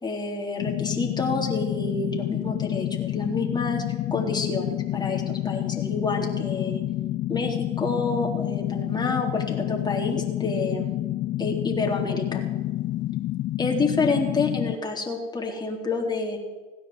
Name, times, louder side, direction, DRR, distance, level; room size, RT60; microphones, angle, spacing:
voice 1, 0.0-3.8 4.1-6.8 7.3-11.0 11.4-12.4 13.6-16.4, left 3 dB, 10° left, 0 dB, 3.6 m, -28 dB
sound 1, 0.6-14.8, left 15 dB, 35° left, 0.5 m, -29 dB
17.0 x 9.9 x 7.9 m, 1.3 s
hypercardioid pair, 100°, 33 cm